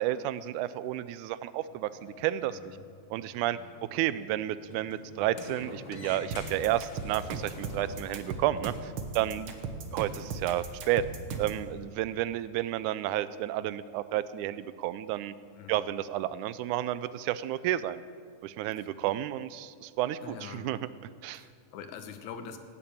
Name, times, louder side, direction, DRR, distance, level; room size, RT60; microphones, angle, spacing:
voice 1, 0.0-2.6 3.1-3.6 3.9-9.6 9.9-11.0 11.4-15.3 15.7-18.0 18.4-20.8 21.2-21.5, right 13 dB, 90° right, 15 dB, 2.0 m, -31 dB
Sliding door, 1.6-8.7, left 4 dB, 55° left, 1.0 m, -48 dB
voice 2, 2.5-2.9 3.5-3.9 9.2-9.5 15.5-15.9 18.8-18.9 20.2-20.7 21.3-22.6, left 7 dB, 75° left, 8 dB, 2.3 m, -45 dB
sound 1, 6.3-11.6, right 4 dB, 60° right, 1.5 m, -37 dB
18.0 x 7.1 x 8.7 m, 2.1 s
omnidirectional pair, 3.4 m